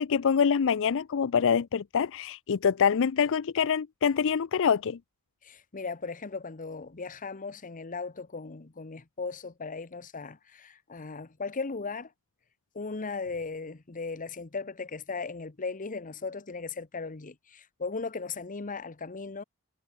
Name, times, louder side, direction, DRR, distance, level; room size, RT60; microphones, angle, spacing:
voice 1, 0.0-5.0, left 7 dB, 60° left, 0.5 m, -25 dB
voice 2, 5.4-12.1 12.7-19.4, left 4 dB, 40° left, 1.0 m, -37 dB
head